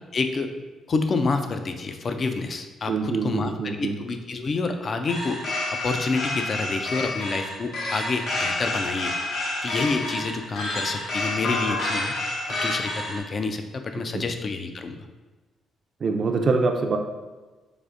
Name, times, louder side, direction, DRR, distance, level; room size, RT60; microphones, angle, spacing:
voice 1, 0.1-0.5 0.9-3.5 3.8-9.1 9.6-12.1 12.5-15.1, left 4 dB, 45° left, 7 dB, 0.3 m, -28 dB
voice 2, 2.9-4.0 14.1-14.2 16.0-17.0, right 4 dB, 50° right, 4 dB, 0.4 m, -24 dB
sound 1, 5.1-13.2, left 2 dB, 70° left, 0.9 m, -29 dB
4.7 x 2.4 x 2.5 m, 1.2 s
cardioid pair, 90°, 0 cm